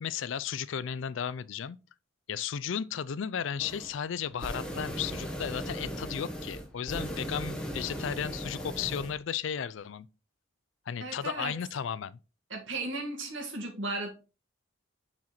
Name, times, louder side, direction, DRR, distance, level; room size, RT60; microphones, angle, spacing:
voice 1, 0.0-1.8 2.3-10.1 10.9-12.2, left 8 dB, 75° left, 0.4 m, -34 dB
sound 1, 3.6-3.9 4.2-9.2, equal, 5° left, 1.0 m, -37 dB
voice 2, 11.0-11.5 12.5-14.1, right 2 dB, 75° right, 2.0 m, -35 dB
6.3 x 4.4 x 4.1 m
head